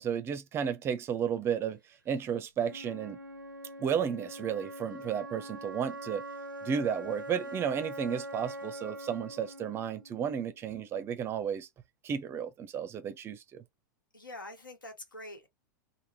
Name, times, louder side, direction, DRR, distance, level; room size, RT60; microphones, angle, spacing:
voice 1, 0.0-1.8 2.1-3.2 3.8-6.2 6.6-11.7 12.0-13.6, right 8 dB, 25° right, 0.5 m, -33 dB
Wind instrument woodwind instrument, 2.6-10.7, right 1 dB, 90° right, 0.5 m, -43 dB
voice 2, 14.1-15.5, left 1 dB, 80° left, 1.0 m, -45 dB
3.4 x 2.0 x 2.6 m
figure-of-eight pair, 95°, 11 cm